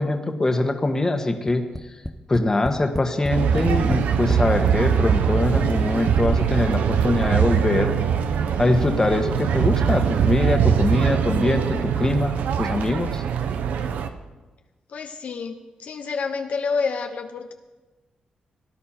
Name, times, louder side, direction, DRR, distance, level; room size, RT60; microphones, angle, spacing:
voice 1, 0.0-1.6 2.3-7.9 8.6-13.2, left 2 dB, 20° left, 5 dB, 1.4 m, -23 dB
Tap, 1.5-4.5 5.3-5.4 5.7-5.8, left 1 dB, 5° left, 0.7 m, -32 dB
sound 1, 3.3-14.1, right 7 dB, 90° right, 0.8 m, -22 dB
voice 2, 14.9-17.5, left 5 dB, 65° left, 5 dB, 0.9 m, -28 dB
18.0 x 10.5 x 4.4 m, 1.2 s
cardioid pair, 95°, 3 cm